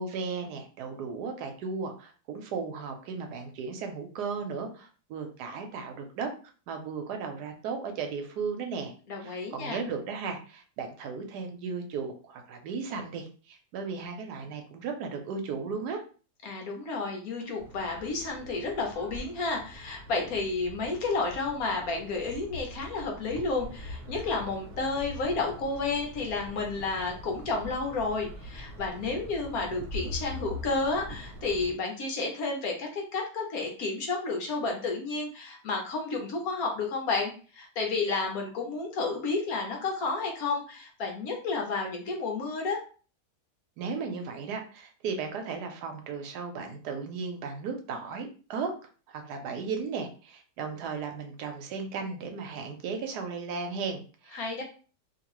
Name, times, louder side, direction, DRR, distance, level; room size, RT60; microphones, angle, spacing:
voice 1, 0.0-6.3 6.7-8.9 9.2-16.0 43.8-48.7 49.1-54.6, right 5 dB, 75° right, 5 dB, 1.1 m, -35 dB
voice 2, 9.1-9.8 16.4-42.8 54.3-54.6, left 3 dB, 65° left, 1 dB, 1.1 m, -31 dB
sound 1, 17.6-31.7, left 1 dB, 45° right, 0.8 m, -43 dB
2.9 x 2.6 x 3.0 m, 0.38 s
omnidirectional pair, 1.8 m